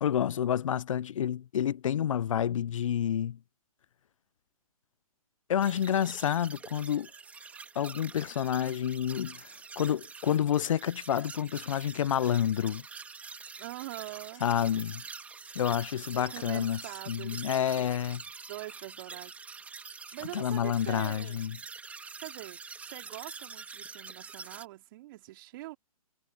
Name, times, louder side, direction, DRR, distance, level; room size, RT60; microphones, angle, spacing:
voice 1, 0.0-3.4 5.5-7.1 7.8-9.5 9.8-12.8 14.4-15.0 15.6-16.8 17.1-18.2 20.3-21.6, left 9 dB, 60° left, 0.6 m, -29 dB
sound 1, 5.6-24.7, right 5 dB, 5° right, 2.3 m, -46 dB
voice 2, 8.5-8.9 13.6-14.4 16.1-18.0 18.5-19.8 20.1-21.5 22.2-22.6 22.9-25.8, right 17 dB, 35° right, 3.8 m, -44 dB
hypercardioid pair, 155°, 19 cm